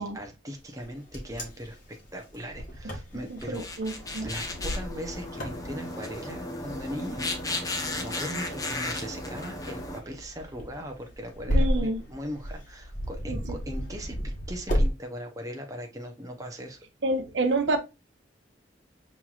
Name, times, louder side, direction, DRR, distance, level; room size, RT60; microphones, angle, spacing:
voice 1, 0.0-3.7 4.2-7.3 7.5-16.8, equal, 20° right, 0.7 m, -39 dB
Wind, 0.7-14.9, equal, 45° left, 1.2 m, -33 dB
voice 2, 3.3-4.3 11.5-12.0 13.3-13.4 17.0-17.8, right 2 dB, 75° right, 0.6 m, -28 dB
sound 1, 3.4-10.0, left 2 dB, 20° left, 0.7 m, -35 dB
5.5 x 3.0 x 2.3 m
head